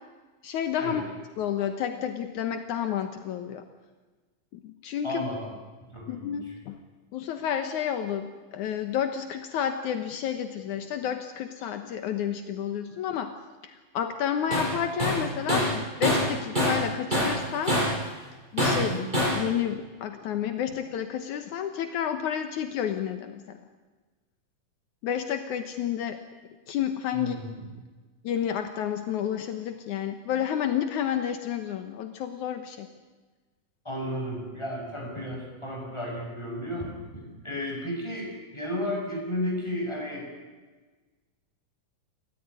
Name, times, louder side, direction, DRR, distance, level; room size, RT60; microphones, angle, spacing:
voice 1, 0.4-1.0 1.4-3.6 4.5-5.3 6.1-6.8 7.1-13.3 13.6-17.8 18.5-19.0 19.2-23.6 25.0-26.2 26.7-27.4 28.2-32.9, left 9 dB, 75° left, 8 dB, 2.5 m, -30 dB
voice 2, 5.0-5.5 5.9-6.3 18.7-19.1 27.1-27.5 33.8-36.9 37.4-40.2, equal, 10° left, 0 dB, 6.6 m, -33 dB
Tools, 14.5-14.7 15.0-16.9 17.1-18.0 18.6-19.4, equal, 15° right, 6.9 m, -25 dB
29.0 x 14.0 x 9.6 m, 1.3 s
omnidirectional pair, 3.6 m